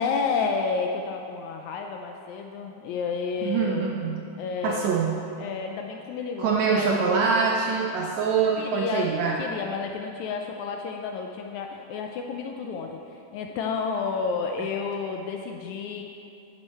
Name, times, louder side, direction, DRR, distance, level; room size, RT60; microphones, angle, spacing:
voice 1, 0.0-3.9 4.4-5.0 5.4-7.4 8.6-9.1 9.4-16.0, left 5 dB, 80° left, 3 dB, 1.8 m, -31 dB
voice 2, 3.4-4.2 4.6-5.2 6.4-9.4, right 5 dB, 75° right, -1 dB, 1.6 m, -24 dB
10.0 x 7.0 x 4.3 m, 2.6 s
omnidirectional pair, 3.7 m